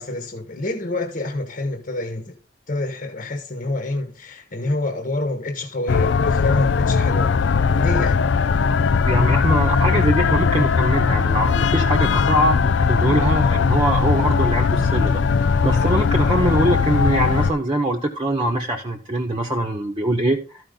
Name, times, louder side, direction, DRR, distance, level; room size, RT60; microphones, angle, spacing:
voice 1, 0.0-2.3 2.7-7.3 7.8-8.2, left 2 dB, 50° left, 1.3 m, -27 dB
sound 1, 5.9-17.5, left 5 dB, 75° left, 0.4 m, -19 dB
voice 2, 9.1-15.2 15.6-20.7, right 1 dB, 25° right, 0.9 m, -23 dB
13.0 x 5.2 x 3.9 m
head